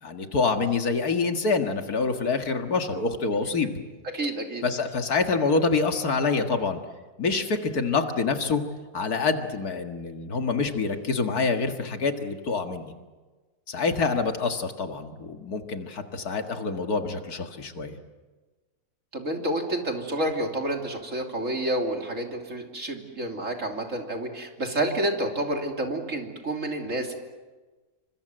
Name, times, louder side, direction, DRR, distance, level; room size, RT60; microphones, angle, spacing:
voice 1, 0.0-3.7 4.6-6.8 7.2-8.6 8.9-12.9 13.7-18.0, left 4 dB, 80° left, 5 dB, 2.4 m, -26 dB
voice 2, 4.1-4.6 19.1-27.1, right 1 dB, 55° right, 3 dB, 3.4 m, -29 dB
28.5 x 25.0 x 7.8 m, 1.3 s
omnidirectional pair, 1.6 m